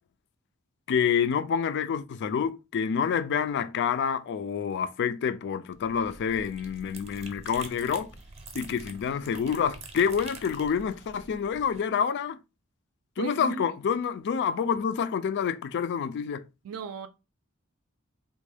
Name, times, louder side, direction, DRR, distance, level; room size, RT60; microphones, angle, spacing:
voice 1, 0.9-8.1 8.5-12.4 13.2-16.4, left 7 dB, 55° left, 0.3 m, -28 dB
sound 1, 5.7-11.8, right 3 dB, 30° right, 0.6 m, -46 dB
voice 2, 13.2-13.8 16.6-17.1, right 6 dB, 75° right, 0.4 m, -36 dB
3.5 x 2.2 x 3.3 m
head